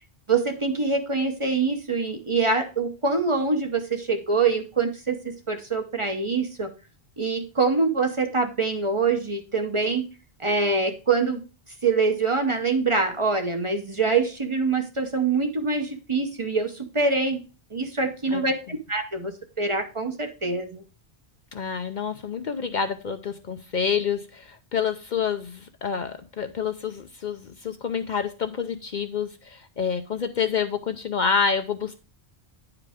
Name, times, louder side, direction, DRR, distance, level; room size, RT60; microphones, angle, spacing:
voice 1, 0.3-6.7 7.2-10.0 10.4-11.4 11.8-17.4 17.7-20.8, right 4 dB, 30° right, 6 dB, 0.7 m, -25 dB
voice 2, 21.5-32.0, left 6 dB, 55° left, 8 dB, 0.6 m, -28 dB
9.5 x 4.9 x 3.5 m, 0.34 s
omnidirectional pair, 1.1 m